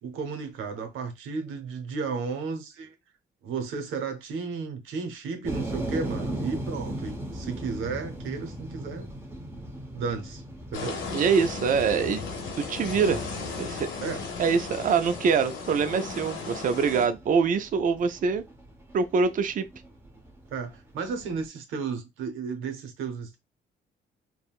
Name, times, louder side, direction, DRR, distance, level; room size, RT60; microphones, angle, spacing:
voice 1, 0.0-3.0 3.4-9.1 9.9-10.4 10.7-11.0 14.0-14.2 20.5-23.4, right 5 dB, 85° right, 0.7 m, -33 dB
sound 1, 5.4-21.4, right 1 dB, 10° right, 0.9 m, -39 dB
sound 2, 10.7-17.1, left 4 dB, 80° left, 1.0 m, -35 dB
voice 2, 11.1-12.2 12.6-13.2 13.6-13.9 14.4-18.5 18.9-19.7, right 5 dB, 40° right, 0.4 m, -24 dB
3.5 x 2.1 x 2.3 m
cardioid pair, 90°, 20 cm